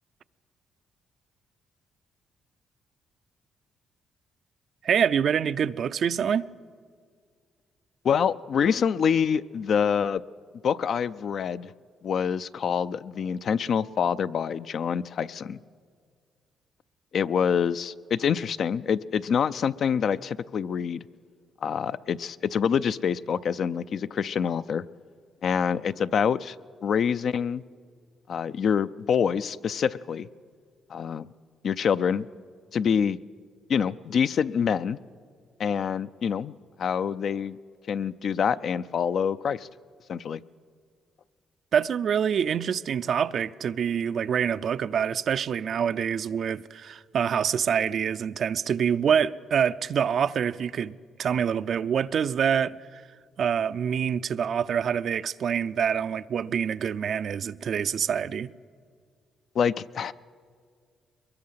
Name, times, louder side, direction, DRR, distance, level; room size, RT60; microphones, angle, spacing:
voice 1, 4.8-6.5 41.7-53.0 53.4-58.5, right 7 dB, 60° right, 0.5 m, -26 dB
voice 2, 8.0-10.2 10.6-11.7 12.0-15.6 17.1-21.0 21.6-24.8 25.4-26.5 26.8-27.6 28.3-30.3 30.9-31.3 31.6-32.3 32.7-33.2 33.7-35.0 35.6-36.5 36.8-37.6 37.9-39.7 40.1-40.4 59.6-60.1, left 7 dB, 60° left, 0.5 m, -26 dB
23.0 x 21.5 x 5.7 m
cardioid pair, 90°, 0 cm